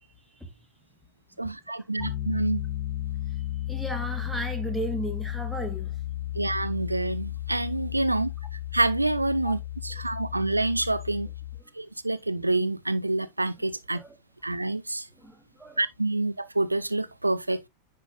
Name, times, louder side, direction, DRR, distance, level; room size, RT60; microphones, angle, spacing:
voice 1, 1.4-2.6 6.3-8.3 8.7-11.3 11.8-14.0 14.4-15.1 15.8-17.6, right 2 dB, 85° right, 0.4 m, -27 dB
Piano, 2.0-11.6, left 14 dB, 35° left, 1.1 m, -34 dB
voice 2, 3.7-5.9 9.4-9.5 13.9-14.1 15.2-15.3 15.6-15.8, right 1 dB, ahead, 1.4 m, -34 dB
9.7 x 5.1 x 2.3 m
figure-of-eight pair, 90°, 0 cm